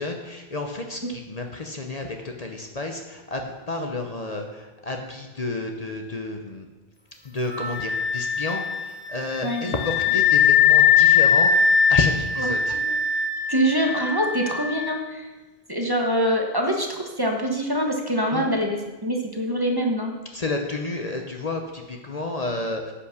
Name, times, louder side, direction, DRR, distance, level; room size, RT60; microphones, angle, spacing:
voice 1, 0.0-6.7 7.2-11.6 11.9-12.8 18.3-18.4 20.3-22.9, left 3 dB, 40° left, 3 dB, 0.9 m, -30 dB
Wind instrument woodwind instrument, 7.5-14.9, left 7 dB, 10° left, 0.7 m, -21 dB
voice 2, 9.4-9.7 12.4-12.5 13.5-15.3 15.7-20.1, equal, 20° right, 1 dB, 1.1 m, -24 dB
9.9 x 5.8 x 6.5 m, 1.2 s
omnidirectional pair, 1.1 m